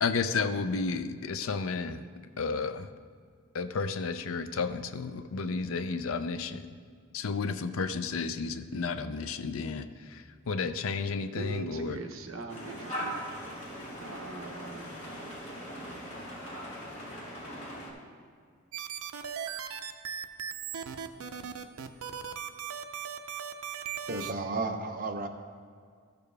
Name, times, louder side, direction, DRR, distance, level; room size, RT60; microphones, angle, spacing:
voice 1, 0.0-2.0 2.4-2.9 3.5-6.6 7.1-12.0, left 4 dB, 70° left, 11 dB, 0.5 m, -32 dB
voice 2, 11.3-13.2 14.0-15.0, right 2 dB, 70° right, 4 dB, 0.9 m, -41 dB
sound 1, 12.5-17.9, equal, 35° left, 2.2 m, -40 dB
sound 2, 18.7-24.3, right 8 dB, 85° right, 0.5 m, -37 dB
voice 3, 24.1-25.3, right 3 dB, 40° right, 4 dB, 0.7 m, -33 dB
14.0 x 6.8 x 3.4 m, 2.1 s
head